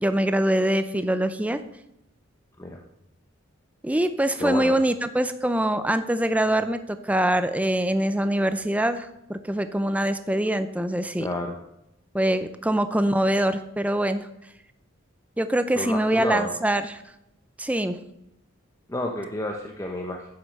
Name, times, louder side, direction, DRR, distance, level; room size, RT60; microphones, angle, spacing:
voice 1, 0.0-1.6 3.8-11.3 12.1-14.3 15.4-17.0 17.6-18.0, right 1 dB, 5° right, 10 dB, 0.5 m, -24 dB
voice 2, 4.4-4.7 11.2-11.6 15.7-16.5 18.9-20.3, left 1 dB, 15° left, 1 dB, 0.9 m, -30 dB
10.0 x 9.4 x 6.6 m, 0.83 s
head